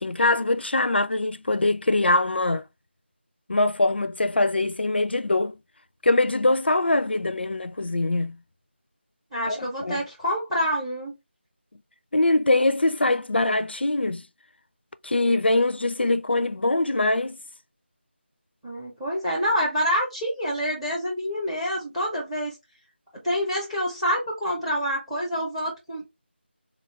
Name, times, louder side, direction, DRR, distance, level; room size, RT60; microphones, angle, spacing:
voice 1, 0.0-2.6 3.5-5.5 6.0-8.4 9.5-10.0 12.1-14.2 15.0-17.4, left 2 dB, 60° left, 0.4 m, -23 dB
voice 2, 9.3-11.1 18.6-22.5 23.2-26.1, equal, ahead, 0.5 m, -27 dB
3.8 x 2.4 x 3.0 m
figure-of-eight pair, 165°, 6 cm